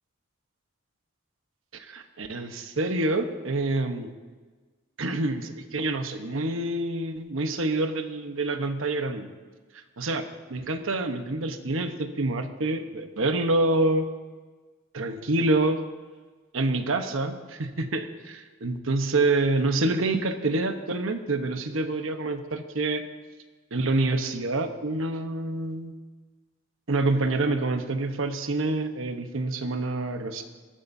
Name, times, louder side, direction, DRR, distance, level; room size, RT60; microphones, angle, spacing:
voice 1, 1.7-4.1 5.0-9.3 10.0-10.2 10.5-14.1 14.9-15.8 16.5-23.0 23.7-25.9 26.9-30.4, right 2 dB, 75° right, 7 dB, 1.0 m, -27 dB
20.0 x 14.0 x 2.7 m, 1.4 s
head